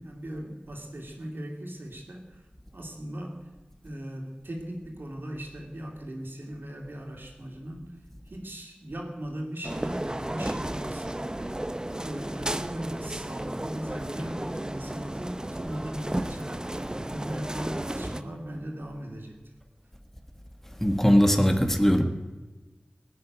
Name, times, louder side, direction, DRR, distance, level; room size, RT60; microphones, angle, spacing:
voice 1, 0.0-2.4 2.7-3.5 3.8-8.0 8.3-11.5 11.9-19.4, right 1 dB, 85° right, 1 dB, 2.6 m, -38 dB
sound 1, 9.6-18.2, right 1 dB, 20° right, 0.6 m, -33 dB
voice 2, 20.8-22.0, equal, 10° left, 5 dB, 1.6 m, -20 dB
19.0 x 6.7 x 9.4 m, 1.2 s
wide cardioid pair, 45°, 3 cm